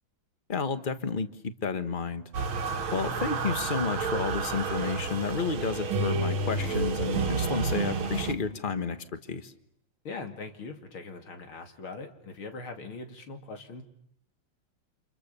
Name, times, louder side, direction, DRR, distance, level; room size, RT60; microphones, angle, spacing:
voice 1, 0.5-2.2 2.9-9.5, left 5 dB, 30° left, 11 dB, 1.3 m, -31 dB
sound 1, 2.3-8.3, right 4 dB, 75° right, 2.2 m, -30 dB
sound 2, 6.0-9.2, right 3 dB, 40° right, 2.2 m, -45 dB
voice 2, 10.0-13.8, left 3 dB, 80° left, 6 dB, 3.4 m, -41 dB
29.5 x 27.0 x 6.9 m, 0.72 s
omnidirectional pair, 2.3 m